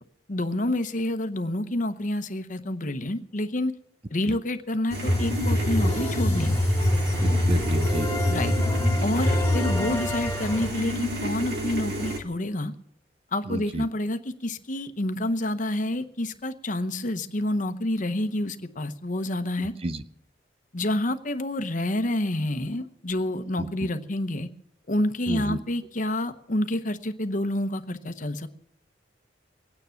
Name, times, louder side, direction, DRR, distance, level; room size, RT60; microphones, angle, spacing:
voice 1, 0.3-3.7 4.1-6.6 8.3-8.5 9.0-12.7 13.3-19.7 20.7-24.5 24.9-28.5, left 1 dB, 45° left, 9 dB, 1.0 m, -28 dB
sound 1, 4.9-12.2, equal, 60° right, 2.1 m, -31 dB
sound 2, 5.1-10.7, left 1 dB, 15° left, 1.9 m, -24 dB
voice 2, 7.2-8.1 13.5-13.8 19.6-20.0 23.6-23.7 25.3-25.6, right 2 dB, 30° right, 11 dB, 0.6 m, -31 dB
22.5 x 9.4 x 5.8 m, 0.73 s
head